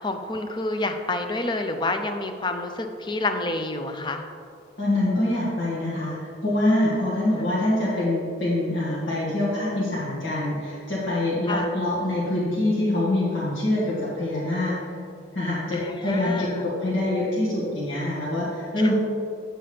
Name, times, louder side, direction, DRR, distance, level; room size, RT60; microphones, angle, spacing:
voice 1, 0.0-4.2 11.5-11.7 15.7-16.6 18.8-18.9, left 2 dB, 25° left, 6 dB, 0.5 m, -28 dB
voice 2, 4.8-14.9 15.3-18.9, left 1 dB, 85° left, -9 dB, 1.7 m, -25 dB
8.7 x 7.1 x 3.4 m, 2.5 s
head